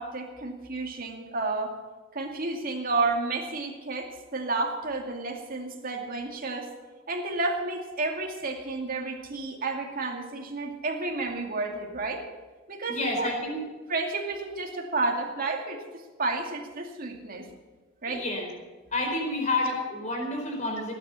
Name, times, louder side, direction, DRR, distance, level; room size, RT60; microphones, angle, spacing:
voice 1, 0.0-1.8 2.1-6.7 7.1-12.2 12.7-13.3 13.9-17.5 18.0-18.2, right 3 dB, 45° right, 2 dB, 2.4 m, -31 dB
voice 2, 12.9-13.6 18.1-18.5 18.9-20.9, left 2 dB, 35° left, 1 dB, 4.5 m, -29 dB
17.5 x 9.8 x 7.0 m, 1.3 s
head